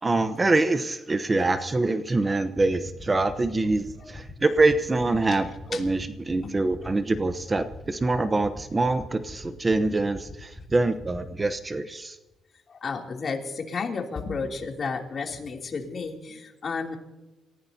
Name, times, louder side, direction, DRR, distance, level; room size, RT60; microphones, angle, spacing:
voice 1, 0.0-12.2, right 2 dB, 20° right, 9 dB, 0.9 m, -25 dB
sound 1, 2.6-11.5, left 1 dB, ahead, 6.1 m, -42 dB
voice 2, 5.2-5.8 6.4-6.5 12.7-17.0, left 4 dB, 45° left, 1 dB, 2.9 m, -32 dB
28.0 x 16.0 x 2.8 m, 1.1 s
cardioid pair, 125°, 0 cm